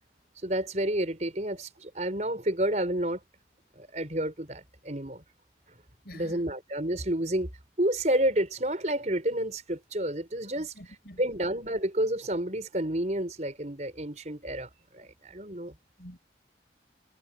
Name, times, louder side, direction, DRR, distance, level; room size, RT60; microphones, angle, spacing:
voice 1, 0.4-3.2 3.8-5.2 6.1-7.5 7.8-10.7 11.2-15.7, right 1 dB, 40° right, 5.1 m, -30 dB
voice 2, 6.0-6.5 10.6-11.3 16.0-16.2, equal, 60° left, 5.0 m, -48 dB
head